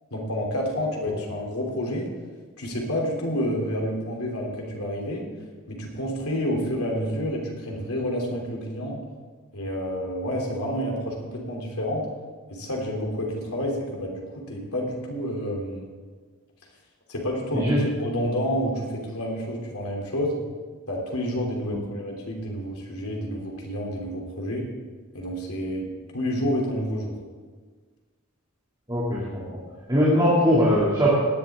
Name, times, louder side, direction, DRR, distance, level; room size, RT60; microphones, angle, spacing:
voice 1, 0.1-2.1 2.6-5.2 5.7-9.0 9.5-12.0 12.5-15.8 17.1-20.4 20.9-24.7 25.1-25.9 26.1-27.1, equal, 80° left, -1 dB, 3.2 m, -29 dB
voice 2, 28.9-29.4 29.9-31.2, equal, 20° right, -7 dB, 2.6 m, -20 dB
17.5 x 11.0 x 3.7 m, 1.5 s
head